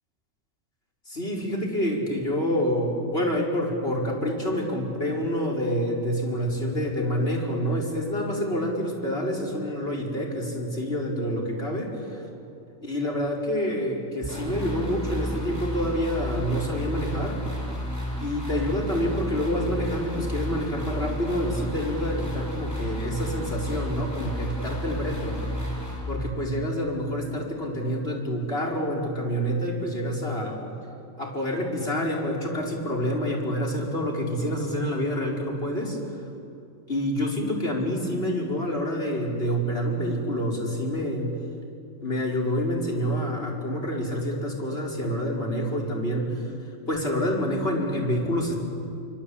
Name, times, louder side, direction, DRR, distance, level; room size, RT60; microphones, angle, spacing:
voice 1, 1.1-11.9 12.8-17.4 18.2-25.4 26.1-30.6 31.2-36.0 36.9-41.4 42.0-46.4 46.9-48.5, equal, 45° left, -1 dB, 5.2 m, -27 dB
sound 1, 14.2-26.0, equal, 10° left, 8.0 m, -32 dB
26.0 x 25.0 x 8.6 m, 2.6 s
omnidirectional pair, 1.4 m